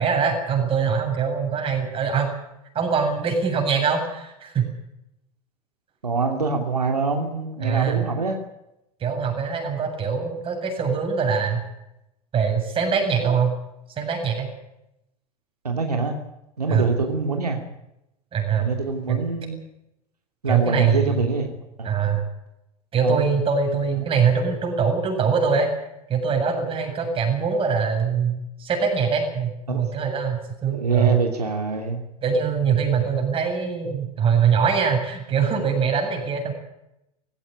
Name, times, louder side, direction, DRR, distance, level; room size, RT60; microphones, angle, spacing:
voice 1, 0.0-2.3 2.7-4.7 7.6-8.0 9.0-11.6 12.3-13.5 14.0-14.5 16.7-16.9 18.3-18.7 19.1-19.2 20.5-21.3 21.8-22.2 22.9-25.7 26.1-31.2 32.2-36.5, right 6 dB, 30° right, 3 dB, 7.9 m, -23 dB
voice 2, 6.0-8.4 13.2-13.3 15.6-16.1 16.6-17.6 18.6-19.6 20.4-21.5 21.8-21.9 23.0-23.2 29.7-29.8 30.7-32.0, right 4 dB, 85° right, 3 dB, 2.9 m, -24 dB
18.5 x 16.5 x 10.0 m, 0.87 s
figure-of-eight pair, 90°, 20 cm